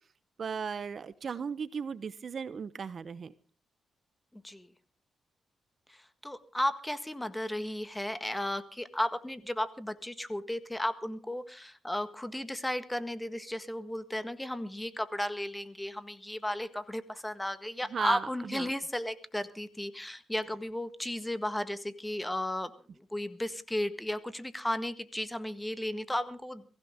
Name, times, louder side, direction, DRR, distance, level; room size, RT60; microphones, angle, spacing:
voice 1, 0.4-3.3 17.9-18.7, right 6 dB, 50° right, 15 dB, 0.9 m, -36 dB
voice 2, 4.3-4.7 5.9-26.6, left 1 dB, 10° left, 12 dB, 1.6 m, -34 dB
22.5 x 16.0 x 3.7 m, 0.38 s
cardioid pair, 80°, 0 cm